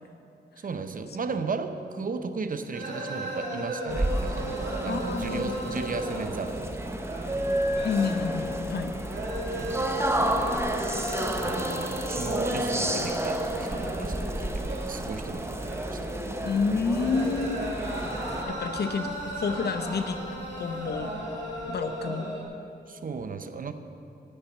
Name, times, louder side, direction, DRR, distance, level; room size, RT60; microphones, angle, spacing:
voice 1, 0.6-6.9 9.6-10.3 11.4-16.0 22.9-23.7, right 4 dB, 50° right, 9 dB, 0.7 m, -35 dB
sound 1, 2.7-22.4, equal, 90° right, 2.2 m, -36 dB
sound 2, 3.9-18.4, right 1 dB, 15° right, 0.8 m, -31 dB
voice 2, 4.9-5.5 7.8-9.0 16.4-17.9 18.2-20.2 20.6-21.1 21.7-22.4, left 5 dB, 70° left, 8 dB, 0.8 m, -29 dB
sound 3, 6.2-21.7, equal, 20° left, 2.3 m, -48 dB
8.7 x 8.2 x 7.2 m, 2.7 s
cardioid pair, 75°, 18 cm